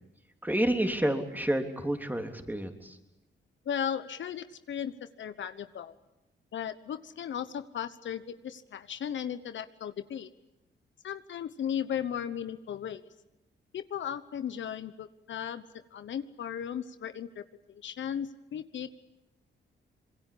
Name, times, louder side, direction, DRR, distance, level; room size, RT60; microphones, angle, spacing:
voice 1, 0.4-3.0, right 1 dB, 10° right, 5 dB, 3.4 m, -29 dB
voice 2, 3.6-5.9 6.5-10.3 11.0-13.0 13.7-15.6 15.9-17.4 17.7-18.9, left 9 dB, 70° left, 12 dB, 1.1 m, -36 dB
26.0 x 21.5 x 8.7 m, 0.93 s
cardioid pair, 65°, 20 cm